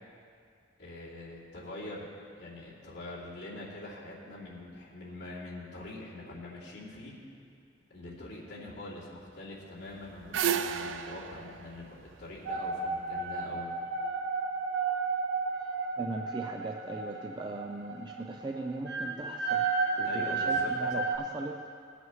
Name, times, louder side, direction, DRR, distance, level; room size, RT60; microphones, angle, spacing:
voice 1, 0.8-2.1 2.4-7.2 7.9-13.7 20.0-21.0, left 2 dB, 65° left, -9 dB, 2.8 m, -44 dB
sound 1, 9.8-13.0, right 8 dB, 90° right, 0.5 m, -33 dB
sound 2, 12.5-21.2, right 4 dB, 65° right, 1.0 m, -32 dB
voice 2, 16.0-19.7 20.0-21.7, right 2 dB, 25° right, 3 dB, 0.4 m, -39 dB
19.0 x 8.0 x 3.1 m, 2.3 s
head